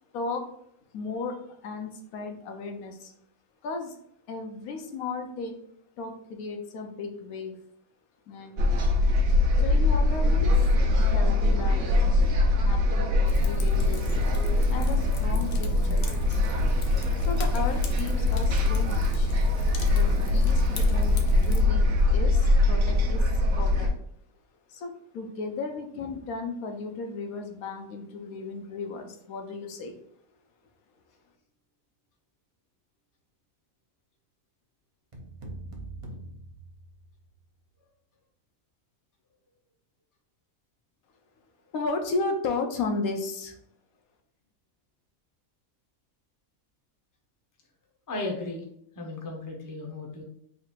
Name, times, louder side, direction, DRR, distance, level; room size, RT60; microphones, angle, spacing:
voice 1, 0.1-0.5 0.9-3.1 3.6-4.0 4.3-5.6 6.0-7.6 8.3-8.7 9.6-10.7 11.0-12.0 12.5-14.2 14.7-16.1 17.2-19.4 19.8-23.9 24.7-29.9 41.7-43.6, left 3 dB, 85° left, 4 dB, 1.2 m, -35 dB
sound 1, 8.6-23.9, left 2 dB, 60° right, 0.9 m, -23 dB
Fire, 13.2-21.6, left 4 dB, 60° left, 0.7 m, -38 dB
sound 2, 35.1-37.4, right 2 dB, 40° right, 0.4 m, -42 dB
voice 2, 48.1-48.6 49.0-50.2, left 2 dB, 20° left, 0 dB, 0.6 m, -35 dB
3.8 x 2.5 x 4.4 m, 0.71 s
omnidirectional pair, 1.5 m